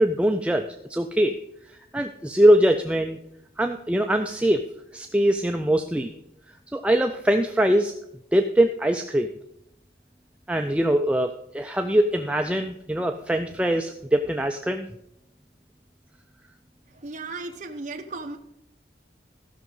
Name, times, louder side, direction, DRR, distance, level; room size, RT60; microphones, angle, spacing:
voice 1, 0.0-1.4 1.9-3.2 3.6-4.7 4.9-6.1 6.7-7.9 8.3-9.3 10.5-14.9, right 1 dB, 5° right, 5 dB, 0.4 m, -22 dB
voice 2, 16.9-18.4, right 3 dB, 45° right, 2 dB, 0.8 m, -36 dB
14.0 x 6.2 x 5.4 m, 0.80 s
head